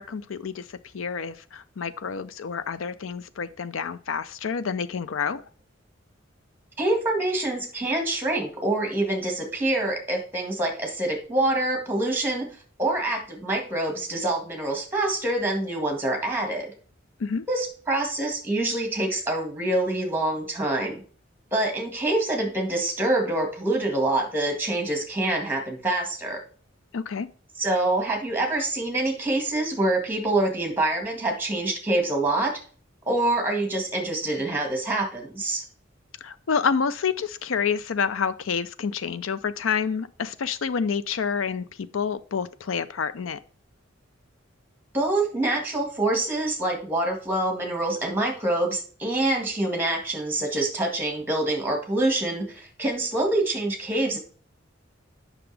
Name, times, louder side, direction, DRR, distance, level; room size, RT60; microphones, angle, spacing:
voice 1, 0.0-5.4 17.2-17.5 26.9-27.3 36.2-43.4, left 6 dB, 90° left, 14 dB, 0.5 m, -28 dB
voice 2, 6.8-12.5 12.8-16.7 17.5-21.0 21.5-26.4 27.6-32.5 33.1-35.6 44.9-54.2, right 2 dB, 10° right, 2 dB, 1.8 m, -26 dB
7.9 x 5.9 x 3.4 m, 0.42 s
head